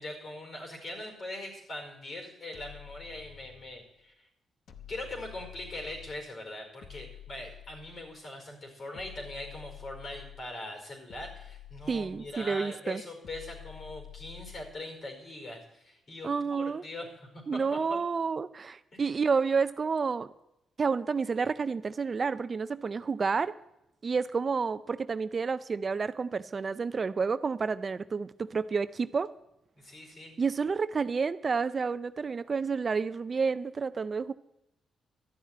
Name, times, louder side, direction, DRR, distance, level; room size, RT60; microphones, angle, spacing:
voice 1, 0.0-4.3 4.9-18.0 18.9-19.0 26.9-27.0 29.8-30.4, left 1 dB, 50° left, 3 dB, 4.9 m, -42 dB
sound 1, 2.5-3.8 4.7-6.3 6.8-8.2 8.9-10.6 11.1-12.5 13.2-14.8, left 11 dB, 70° left, 1.1 m, -49 dB
voice 2, 11.9-13.0 16.2-16.8 17.5-20.3 20.8-23.5 24.0-29.3 30.4-34.3, right 5 dB, 45° right, 14 dB, 0.5 m, -30 dB
12.5 x 7.2 x 9.6 m, 0.86 s
cardioid pair, 65°, 0 cm